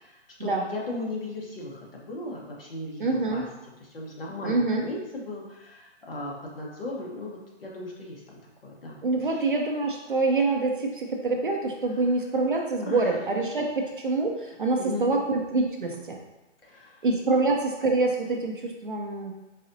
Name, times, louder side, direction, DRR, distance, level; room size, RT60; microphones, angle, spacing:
voice 1, 0.0-3.5 3.8-9.4 12.8-13.2 14.8-15.2 16.6-17.1, left 2 dB, 55° left, -3 dB, 1.0 m, -37 dB
voice 2, 3.0-3.4 4.4-4.8 9.0-16.2 17.0-19.3, right 3 dB, 50° right, 1 dB, 0.4 m, -26 dB
4.0 x 2.7 x 2.6 m, 1.0 s
hypercardioid pair, 175°, 35 cm